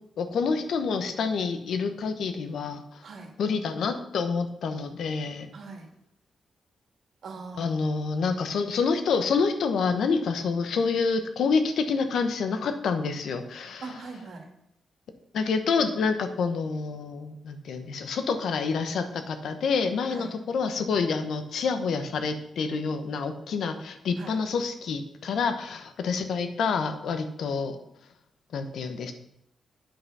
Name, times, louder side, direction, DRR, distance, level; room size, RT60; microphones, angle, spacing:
voice 1, 0.2-3.0 3.4-5.5 7.6-13.8 15.3-27.8 28.5-29.1, left 5 dB, 75° left, 8 dB, 0.9 m, -28 dB
voice 2, 5.5-5.9 7.2-7.8 13.8-14.5 20.1-20.3 24.2-24.3, right 3 dB, 65° right, 2 dB, 1.9 m, -41 dB
8.8 x 5.6 x 5.5 m, 0.79 s
cardioid pair, 115°, 0 cm